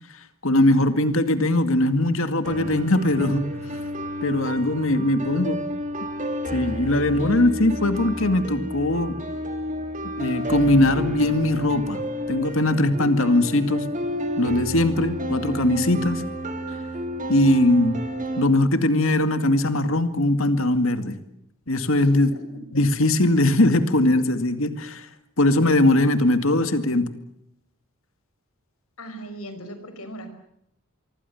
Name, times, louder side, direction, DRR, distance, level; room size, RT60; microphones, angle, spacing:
voice 1, 0.4-3.5 4.2-5.6 6.5-9.2 10.0-12.0 12.3-13.9 14.4-16.2 17.3-18.0 18.4-21.2 21.7-22.3 22.7-25.1 25.4-27.1, left 1 dB, 65° left, 9 dB, 2.3 m, -20 dB
sound 1, 2.4-18.4, equal, 35° right, 2.9 m, -30 dB
voice 2, 22.0-22.4 22.7-22.8 29.0-30.3, right 1 dB, 85° left, 9 dB, 5.4 m, -38 dB
25.0 x 24.0 x 7.2 m, 0.76 s
head